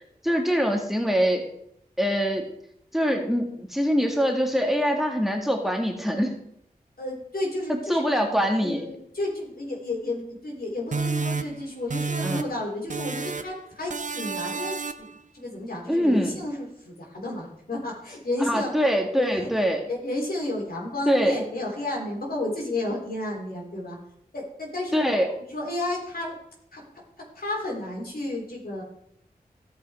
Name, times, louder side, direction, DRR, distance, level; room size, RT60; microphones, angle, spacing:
voice 1, 0.2-1.4 2.0-2.5 2.9-6.3 7.7-8.8 12.2-12.4 15.9-16.3 18.4-19.8 21.1-21.4 24.9-25.3, equal, ahead, 3 dB, 1.8 m, -24 dB
voice 2, 7.0-8.0 8.6-15.1 15.3-18.7 19.1-19.5 19.9-24.0 24.3-25.0 25.4-26.3 26.7-26.8 27.4-28.8, left 1 dB, 65° left, -2 dB, 3.8 m, -32 dB
sound 1, 10.9-12.6 12.9-13.6 13.9-15.2, right 4 dB, 50° right, 0.6 m, -30 dB
16.0 x 5.6 x 4.4 m, 0.73 s
cardioid pair, 40°, 16 cm